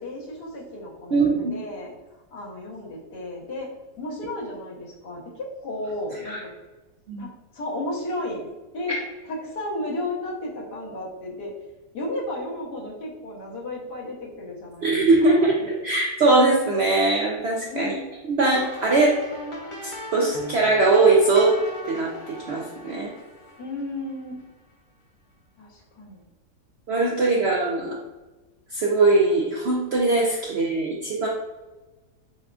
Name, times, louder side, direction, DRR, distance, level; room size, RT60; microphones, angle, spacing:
voice 1, 0.0-1.9 2.3-3.7 4.0-6.4 7.2-7.3 7.5-8.5 8.7-9.0 9.3-11.5 11.9-15.5 17.7-18.1 23.6-24.4 25.6-26.2, left 1 dB, 85° left, -4 dB, 1.6 m, -33 dB
voice 2, 1.1-1.5 6.3-6.4 7.1-7.3 8.9-9.0 14.8-17.9 18.3-19.2 20.1-21.5 21.9-23.1 26.9-28.0 28.7-31.3, right 3 dB, 75° right, -2 dB, 0.6 m, -21 dB
sound 1, 18.5-24.4, equal, 40° left, 0.7 m, -39 dB
6.7 x 2.4 x 2.4 m, 1.2 s
omnidirectional pair, 1.7 m